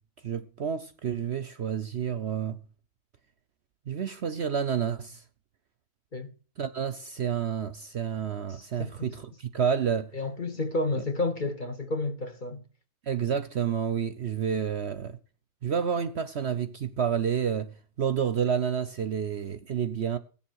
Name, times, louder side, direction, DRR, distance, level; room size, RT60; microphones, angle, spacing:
voice 1, 0.2-2.6 3.9-5.2 6.6-10.1 13.1-15.2 15.6-17.7 18.0-20.2, right 7 dB, 55° right, 0.9 m, -29 dB
voice 2, 8.5-9.1 10.1-12.6, left 2 dB, 35° left, 1.1 m, -31 dB
16.5 x 7.2 x 6.2 m
omnidirectional pair, 1.6 m